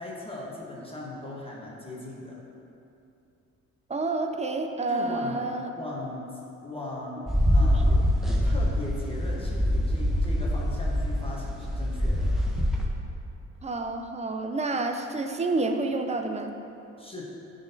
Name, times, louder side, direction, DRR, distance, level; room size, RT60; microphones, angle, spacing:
voice 1, 0.0-2.4 4.9-5.4 5.8-12.3 17.0-17.2, left 2 dB, 20° left, -4 dB, 1.1 m, -38 dB
voice 2, 3.9-5.7 7.6-8.0 13.6-16.5, right 2 dB, 20° right, 5 dB, 0.5 m, -29 dB
sound 1, 7.3-12.9, equal, ahead, 0.8 m, -24 dB
10.0 x 4.0 x 2.7 m, 2.7 s
cardioid pair, 90°, 30 cm